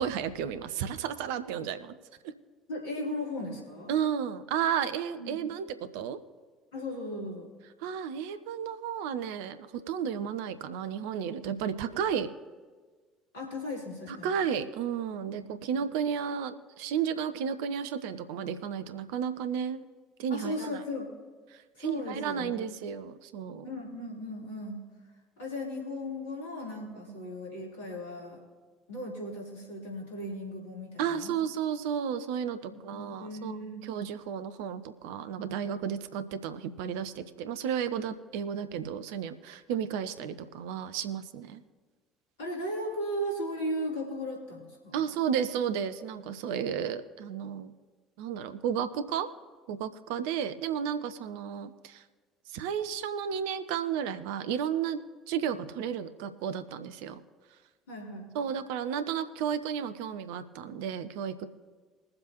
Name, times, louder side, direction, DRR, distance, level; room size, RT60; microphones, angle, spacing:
voice 1, 0.0-1.9 2.2-2.3 3.9-6.2 7.8-12.3 14.1-19.8 20.2-20.8 21.5-23.7 31.0-41.6 44.9-47.7 48.2-49.3 49.7-52.0 52.5-55.0 55.3-57.2 58.3-61.5, right 8 dB, 65° right, 11 dB, 0.7 m, -33 dB
voice 2, 2.7-3.9 5.1-5.4 6.7-7.5 13.3-14.3 15.4-15.5 15.8-15.9 20.3-21.1 21.7-22.7 23.6-24.8 25.4-28.4 28.9-31.4 32.7-33.9 42.4-45.1 57.9-58.3, left 1 dB, 70° left, -3 dB, 3.6 m, -37 dB
22.0 x 7.6 x 3.0 m, 1.4 s
figure-of-eight pair, 55°, 0 cm